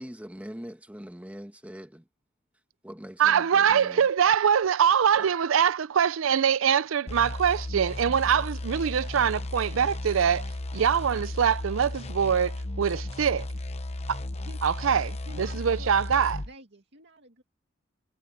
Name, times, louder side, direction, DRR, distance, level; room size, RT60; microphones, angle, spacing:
voice 1, 0.0-2.0 2.8-4.1, equal, 5° right, 1.3 m, -42 dB
voice 2, 3.2-10.5 10.7-13.5 14.1-14.2 14.6-16.4, right 8 dB, 80° right, 0.5 m, -23 dB
sound 1, 7.1-16.5, left 1 dB, 35° left, 1.0 m, -35 dB
voice 3, 15.3-15.9 16.4-17.4, right 1 dB, 60° right, 2.2 m, -49 dB
head